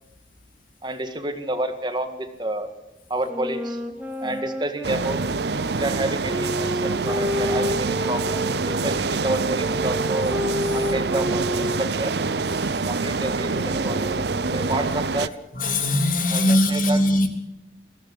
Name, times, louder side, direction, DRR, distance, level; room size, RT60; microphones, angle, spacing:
voice 1, 0.8-2.7 3.1-3.8 4.2-5.2 5.8-10.3 10.7-12.1 12.7-14.1 14.5-15.3 16.3-17.0, right 1 dB, 25° right, 8 dB, 1.9 m, -29 dB
sound 1, 3.2-8.9 9.6-15.1, left 1 dB, 10° right, 1.9 m, -31 dB
sound 2, 4.8-15.3, right 4 dB, 65° right, 0.7 m, -26 dB
voice 2, 15.5-17.3, left 1 dB, 45° left, 5 dB, 3.2 m, -21 dB
21.5 x 15.5 x 9.7 m, 0.92 s
head